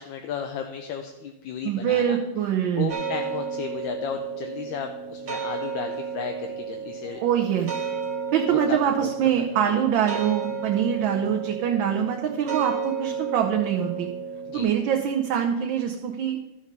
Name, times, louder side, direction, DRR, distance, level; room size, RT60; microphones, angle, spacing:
voice 1, 0.0-2.2 2.8-7.2 8.5-9.1 9.6-9.8 14.5-14.7, left 8 dB, 75° left, 5 dB, 1.4 m, -34 dB
voice 2, 1.6-3.0 7.2-7.7 8.3-14.1 14.5-16.4, right 9 dB, 75° right, 2 dB, 1.4 m, -24 dB
sound 1, 2.9-14.6, right 6 dB, 60° right, 1.9 m, -33 dB
13.0 x 5.2 x 5.2 m, 1.0 s
omnidirectional pair, 2.2 m